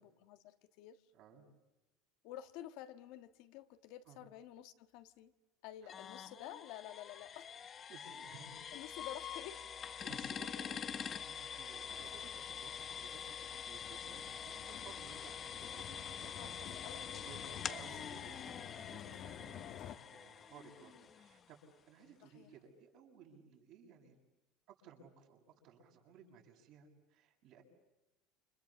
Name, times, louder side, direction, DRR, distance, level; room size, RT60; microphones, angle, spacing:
voice 1, 0.0-1.0 2.2-5.3 5.6-7.5 8.7-9.6 10.0-10.1 16.4-17.5 22.3-22.5, left 12 dB, 65° left, 8 dB, 1.6 m, -51 dB
voice 2, 1.1-1.4 4.1-4.2 5.8-5.9 7.9-8.7 10.0-24.2 24.7-27.6, right 6 dB, 55° right, 1 dB, 7.1 m, -58 dB
sound 1, 5.9-21.6, left 8 dB, 30° left, 0.9 m, -45 dB
sound 2, 11.9-20.0, left 10 dB, 45° left, 1.7 m, -52 dB
29.5 x 27.5 x 7.3 m, 1.0 s
supercardioid pair, 140°, 0 cm